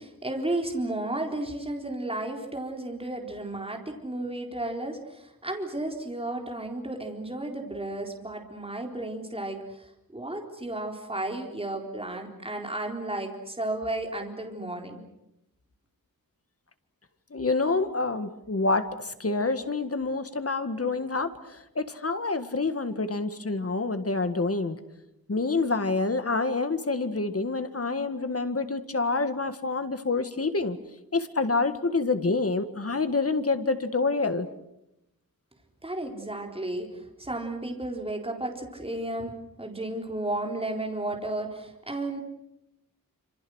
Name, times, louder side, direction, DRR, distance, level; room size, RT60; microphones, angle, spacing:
voice 1, 0.0-9.6 10.1-15.0 35.8-36.9 37.2-39.3 39.6-42.2, right 2 dB, 15° right, 2 dB, 4.0 m, -33 dB
voice 2, 17.3-24.8 25.3-30.8 31.1-34.5, left 3 dB, 40° left, 10 dB, 1.8 m, -27 dB
27.5 x 27.0 x 6.4 m, 0.87 s
wide cardioid pair, 105°, 35 cm